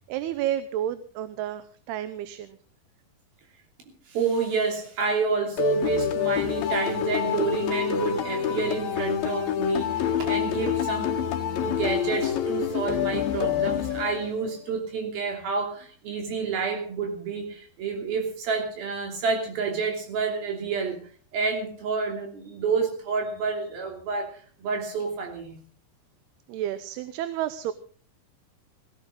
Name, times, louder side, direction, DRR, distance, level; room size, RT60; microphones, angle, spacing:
voice 1, 0.1-2.6 26.5-27.7, right 11 dB, 85° right, 12 dB, 2.9 m, -31 dB
voice 2, 4.1-21.0 21.3-25.6, right 5 dB, 65° right, 3 dB, 4.8 m, -29 dB
sound 1, 5.6-14.5, left 9 dB, 70° left, 3.8 m, -27 dB
17.5 x 17.0 x 3.8 m, 0.42 s
omnidirectional pair, 4.5 m